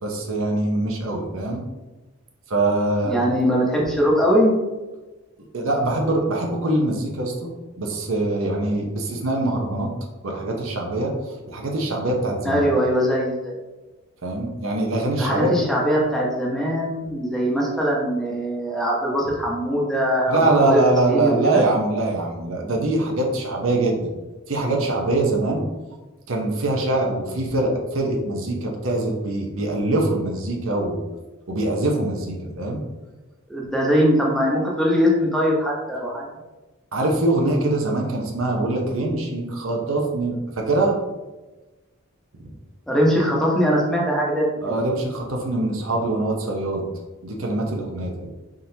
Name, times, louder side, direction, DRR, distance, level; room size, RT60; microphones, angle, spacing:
voice 1, 0.0-1.6 2.5-3.2 5.5-7.5 7.8-9.9 10.2-11.1 11.5-12.6 14.2-15.5 20.3-24.0 24.5-25.7 26.3-31.0 31.5-32.8 36.9-41.0 44.6-46.9 47.2-48.3, right 2 dB, 70° right, 0 dB, 0.8 m, -23 dB
voice 2, 3.0-4.5 12.4-13.5 15.2-20.8 21.1-21.7 33.5-36.3 42.9-44.7, equal, ahead, -4 dB, 0.8 m, -21 dB
4.4 x 3.7 x 2.7 m, 1.1 s
head